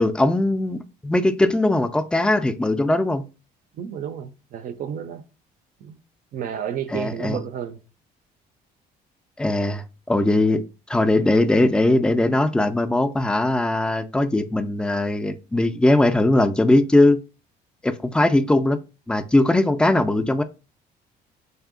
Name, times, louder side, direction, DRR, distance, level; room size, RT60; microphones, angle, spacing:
voice 1, 0.0-3.2 6.9-7.4 9.4-10.6 10.9-17.2 17.8-18.8 19.1-20.4, left 2 dB, 5° left, 0.3 m, -20 dB
voice 2, 3.8-5.2 5.8-6.0 6.3-7.8, right 9 dB, 55° right, 0.4 m, -31 dB
3.4 x 2.7 x 3.6 m
cardioid pair, 110°, 17 cm